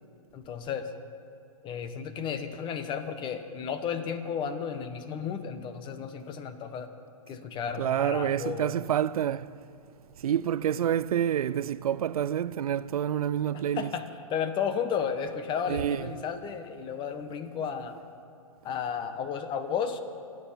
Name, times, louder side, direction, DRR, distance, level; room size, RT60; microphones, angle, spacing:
voice 1, 0.3-0.9 1.6-6.9 7.3-8.7 13.5-18.0 18.6-20.0, left 7 dB, 25° left, 1.2 m, -33 dB
voice 2, 7.8-9.5 10.2-13.9 15.7-16.0, right 10 dB, 80° right, 0.5 m, -28 dB
25.0 x 9.3 x 5.8 m
hypercardioid pair, 130°, 18 cm